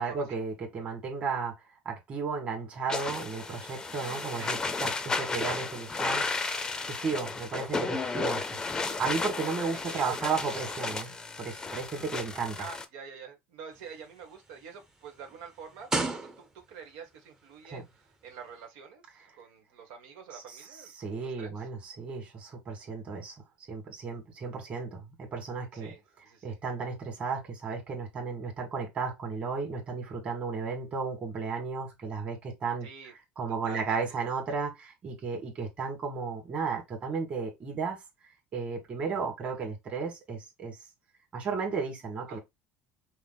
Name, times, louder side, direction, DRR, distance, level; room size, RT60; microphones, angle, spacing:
voice 1, 0.0-1.5 1.9-6.3 6.9-8.4 9.0-11.1 11.4-12.6 17.7-17.8 20.3-20.6 21.0-23.3 23.7-25.9 26.4-32.9 33.4-38.0 38.5-40.8 41.3-42.4, right 5 dB, 30° right, 1.9 m, -34 dB
sound 1, 2.9-12.8, left 4 dB, 15° left, 0.6 m, -33 dB
voice 2, 9.7-10.2 12.6-20.9 21.2-21.7 25.7-26.6 32.8-33.1 33.6-34.2 42.3-42.4, right 6 dB, 80° right, 1.4 m, -47 dB
sound 2, 13.7-16.9 17.7-17.9, right 3 dB, 15° right, 0.8 m, -35 dB
5.6 x 2.2 x 3.9 m
cardioid pair, 150°, 4 cm